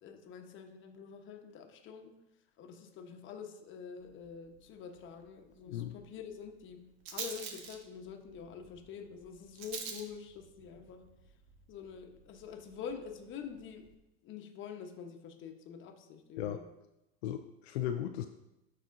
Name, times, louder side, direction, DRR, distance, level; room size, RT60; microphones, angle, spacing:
voice 1, 0.0-2.1 2.6-6.8 7.1-11.0 11.7-13.9 14.2-16.6, left 7 dB, 40° left, 4 dB, 1.1 m, -46 dB
Rattle, 4.0-13.9, right 5 dB, 50° right, 1.1 m, -49 dB
voice 2, 17.2-18.3, left 11 dB, 80° left, 6 dB, 0.5 m, -36 dB
12.5 x 4.2 x 2.6 m, 0.91 s
hypercardioid pair, 105°, 32 cm